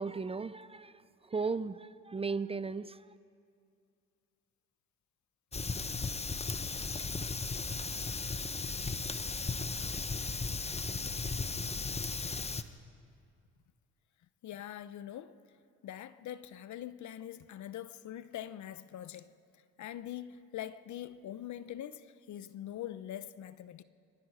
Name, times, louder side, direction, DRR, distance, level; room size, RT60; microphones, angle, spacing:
voice 1, 0.0-3.2, right 4 dB, 20° right, 0.5 m, -36 dB
Fire, 5.5-12.6, left 4 dB, 20° left, 1.0 m, -36 dB
voice 2, 14.4-15.4 15.8-19.4 19.8-23.8, left 11 dB, 70° left, 0.8 m, -43 dB
27.5 x 23.5 x 4.9 m
cardioid pair, 90°, 30 cm